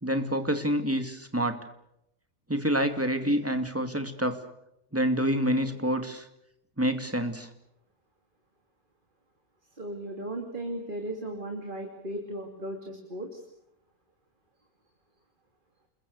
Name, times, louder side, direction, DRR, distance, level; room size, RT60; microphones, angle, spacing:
voice 1, 0.0-1.6 2.5-4.4 4.9-6.2 6.8-7.5, equal, 10° right, 7 dB, 2.3 m, -27 dB
voice 2, 9.8-13.4, right 1 dB, 35° right, 3 dB, 3.0 m, -36 dB
29.0 x 22.0 x 6.7 m, 0.80 s
omnidirectional pair, 1.5 m